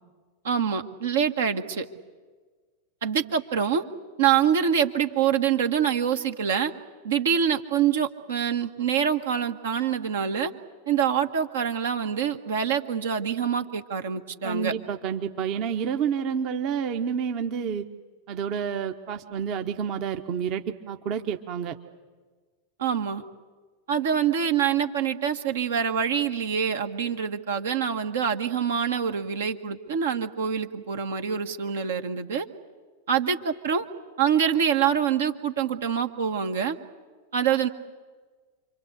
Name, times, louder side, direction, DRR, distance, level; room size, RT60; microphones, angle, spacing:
voice 1, 0.4-1.9 3.0-3.8 4.2-6.7 7.0-10.5 10.9-14.7 22.8-23.2 23.9-32.5 33.1-33.9 34.2-36.8 37.3-37.7, right 8 dB, 60° right, 6 dB, 1.7 m, -25 dB
voice 2, 14.4-17.9 18.3-21.8, right 7 dB, 40° right, 5 dB, 1.3 m, -29 dB
29.0 x 24.5 x 8.3 m, 1.4 s
figure-of-eight pair, 90°, 0 cm